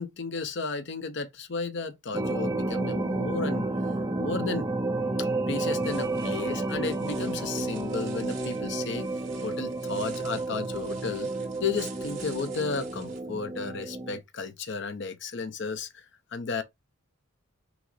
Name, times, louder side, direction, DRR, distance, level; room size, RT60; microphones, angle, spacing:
voice 1, 0.0-3.7 4.2-4.7 5.2-9.1 9.4-11.3 11.6-16.0 16.3-16.6, left 4 dB, 55° left, 0.6 m, -33 dB
sound 1, 2.1-14.2, right 2 dB, 15° right, 0.5 m, -31 dB
sound 2, 5.7-13.2, right 6 dB, 35° right, 2.1 m, -49 dB
5.9 x 2.0 x 3.8 m
head